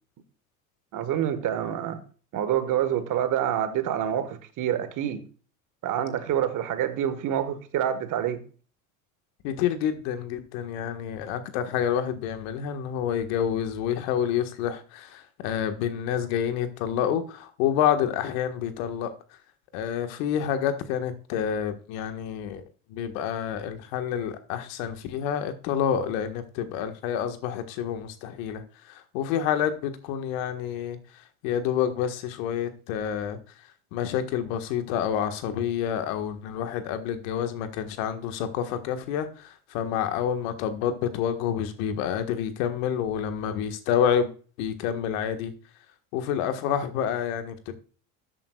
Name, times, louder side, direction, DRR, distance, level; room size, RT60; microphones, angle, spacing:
voice 1, 0.9-2.0 2.3-5.2 5.8-8.4, right 10 dB, 45° right, 1.6 m, -27 dB
voice 2, 9.4-19.1 19.7-22.6 22.9-33.4 33.9-44.3 44.6-45.5 46.1-47.7, left 9 dB, 70° left, 1.6 m, -28 dB
13.0 x 8.7 x 2.4 m
hypercardioid pair, 95°, 42 cm